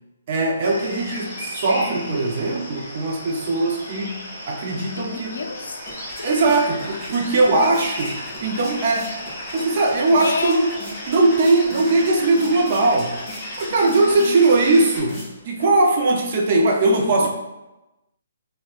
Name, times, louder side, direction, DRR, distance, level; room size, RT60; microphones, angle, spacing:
voice 1, 0.3-4.2 4.5-5.4 6.2-9.1 9.5-10.7 11.1-13.1 13.6-15.2 15.5-17.3, right 2 dB, 35° right, 1 dB, 0.3 m, -20 dB
sound 1, 0.6-15.0, left 1 dB, 35° left, 1.2 m, -36 dB
voice 2, 5.0-6.3 9.6-9.8 10.2-10.6 13.7-14.8 15.6-15.7, left 4 dB, 70° left, 5 dB, 0.3 m, -31 dB
sound 2, 5.5-15.6, equal, 5° left, 0.6 m, -38 dB
4.2 x 2.0 x 2.3 m, 1.0 s
hypercardioid pair, 175°, 0 cm